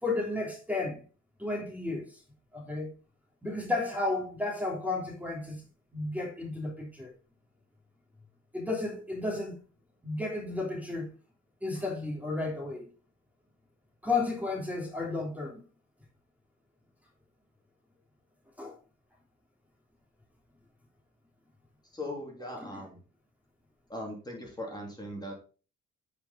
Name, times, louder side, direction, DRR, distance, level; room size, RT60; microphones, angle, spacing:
voice 1, 0.0-1.0 1.4-2.2 2.5-2.9 3.4-5.6 5.9-7.1 8.5-9.6 10.0-11.1 11.6-12.9 14.0-15.6 18.6-18.8, left 3 dB, 5° right, 2.9 m, -32 dB
voice 2, 21.9-23.0 23.9-25.4, left 1 dB, 15° left, 2.9 m, -39 dB
9.6 x 5.3 x 4.1 m
cardioid pair, 90°, 30 cm